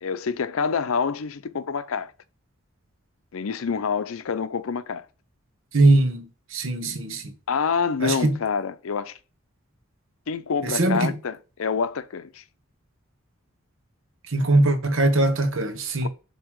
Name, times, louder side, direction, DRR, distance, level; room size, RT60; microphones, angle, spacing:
voice 1, 0.0-2.1 3.3-5.0 7.5-9.2 10.3-12.4 16.0-16.1, left 6 dB, 80° left, 0.5 m, -27 dB
voice 2, 5.7-6.2 6.5-7.2 8.0-8.4 10.6-11.1 14.3-16.1, right 2 dB, 65° right, 1.0 m, -21 dB
7.3 x 2.9 x 4.6 m
head